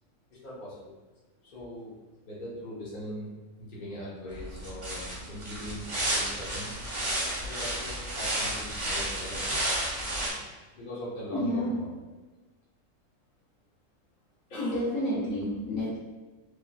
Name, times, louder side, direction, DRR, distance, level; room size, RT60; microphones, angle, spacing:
voice 1, 0.3-0.9 1.4-1.9 2.2-6.7 7.4-9.6 10.0-11.9 14.5-14.8, equal, 40° left, -7 dB, 1.0 m, -41 dB
sound 1, 4.3-10.3, right 1 dB, 50° right, 0.3 m, -32 dB
voice 2, 11.3-11.9 14.6-16.0, equal, 70° left, -6 dB, 1.0 m, -30 dB
3.1 x 2.6 x 2.2 m, 1.2 s
omnidirectional pair, 1.4 m